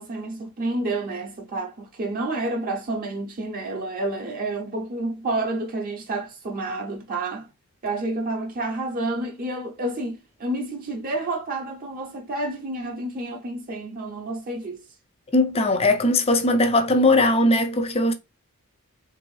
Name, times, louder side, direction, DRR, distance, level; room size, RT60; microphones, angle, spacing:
voice 1, 0.0-7.5 7.8-14.8, right 2 dB, 40° right, 0.5 m, -29 dB
voice 2, 15.3-18.1, left 2 dB, 25° left, 0.4 m, -19 dB
3.3 x 2.6 x 3.1 m
head